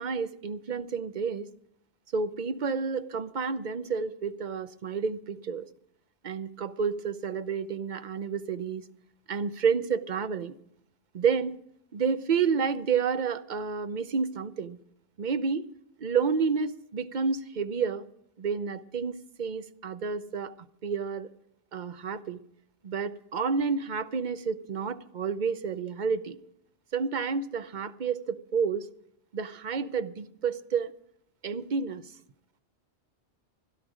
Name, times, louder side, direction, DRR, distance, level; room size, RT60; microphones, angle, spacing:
voice 1, 0.0-1.5 2.1-5.7 6.2-8.8 9.3-10.5 11.1-11.6 11.9-14.8 15.2-15.7 16.0-18.0 18.4-20.5 20.8-21.3 21.7-22.4 22.8-26.4 26.9-28.9 29.3-30.9 31.4-32.1, right 5 dB, 50° right, 0.8 m, -30 dB
17.0 x 12.0 x 4.9 m
omnidirectional pair, 1.2 m